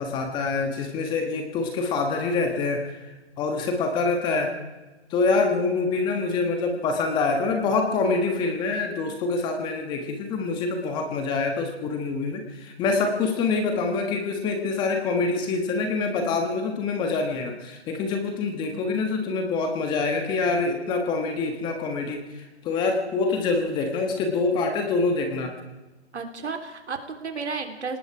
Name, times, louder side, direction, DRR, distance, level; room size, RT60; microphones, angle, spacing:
voice 1, 0.0-4.6 5.1-25.5, left 3 dB, 15° left, 4 dB, 1.4 m, -26 dB
voice 2, 26.1-28.0, right 4 dB, 75° right, 6 dB, 3.5 m, -33 dB
29.0 x 19.0 x 4.8 m, 1.1 s
hypercardioid pair, 155°, 34 cm